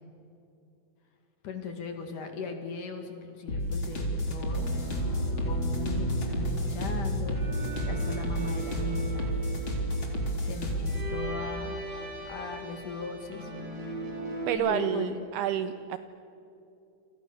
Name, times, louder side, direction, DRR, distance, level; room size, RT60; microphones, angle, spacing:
voice 1, 1.4-4.7 5.2-9.3 10.4-11.8 12.3-13.5 14.5-15.2, left 5 dB, 55° left, 5 dB, 3.1 m, -38 dB
sound 1, 3.5-11.1, equal, 30° left, 4.0 m, -31 dB
sound 2, 4.5-14.5, right 1 dB, 35° right, 6.3 m, -37 dB
voice 2, 14.5-16.0, right 10 dB, 80° right, 11 dB, 2.3 m, -29 dB
29.0 x 27.5 x 6.9 m, 2.7 s
omnidirectional pair, 5.2 m